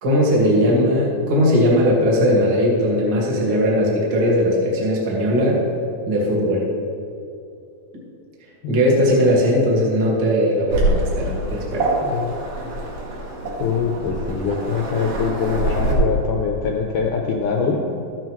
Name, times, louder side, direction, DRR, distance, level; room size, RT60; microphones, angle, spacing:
voice 1, 0.0-5.6 6.1-6.6 8.7-11.9, equal, 40° right, -3 dB, 1.7 m, -18 dB
Waves surf, 10.7-15.9, right 1 dB, 65° right, 3.0 m, -25 dB
voice 2, 12.0-12.3 13.6-18.0, left 5 dB, 75° left, 1 dB, 1.9 m, -23 dB
13.5 x 9.1 x 3.1 m, 2.7 s
omnidirectional pair, 4.3 m